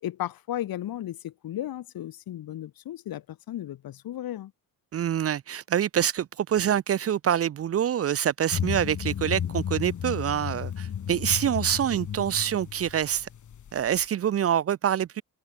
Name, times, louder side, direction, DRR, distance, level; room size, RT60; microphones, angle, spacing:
voice 1, 0.0-4.5, left 12 dB, 75° left, 2.2 m, -35 dB
voice 2, 4.9-13.3 13.7-15.2, right 10 dB, 40° right, 0.5 m, -26 dB
sound 1, 8.5-14.0, left 9 dB, 55° left, 3.0 m, -33 dB
cardioid pair, 95°, 36 cm